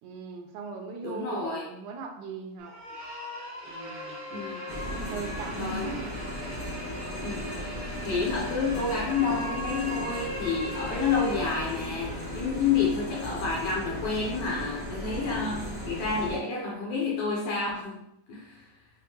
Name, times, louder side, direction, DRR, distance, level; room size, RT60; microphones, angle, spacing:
voice 1, 0.0-2.8 3.7-4.3 4.7-6.1, right 3 dB, 85° right, 4 dB, 2.0 m, -39 dB
voice 2, 1.0-1.7 4.3-4.7 5.6-5.9 7.2-7.5 7.8-18.6, left 5 dB, 70° left, -3 dB, 1.7 m, -29 dB
sound 1, 2.6-12.4, equal, 65° right, 0.9 m, -39 dB
sound 2, 4.7-16.4, equal, 35° left, 1.0 m, -36 dB
6.3 x 2.1 x 2.8 m, 0.81 s
omnidirectional pair, 3.5 m